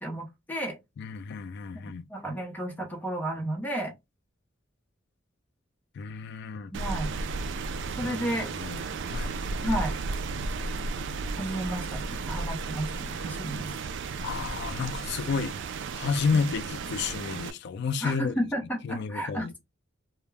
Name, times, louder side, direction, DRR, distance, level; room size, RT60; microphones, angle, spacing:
voice 1, 0.0-0.8 2.1-3.9 6.7-7.1 8.0-8.5 9.6-10.0 11.4-13.7 16.3-16.5 18.0-19.6, right 1 dB, 10° left, 0.6 m, -32 dB
voice 2, 1.0-2.0 6.0-6.7 8.0-8.1 8.6-9.3 14.2-15.6 15.9-18.3 18.8-19.5, left 5 dB, 60° left, 0.3 m, -31 dB
Rain, 6.7-17.5, right 4 dB, 65° right, 0.3 m, -34 dB
2.2 x 2.0 x 3.2 m
head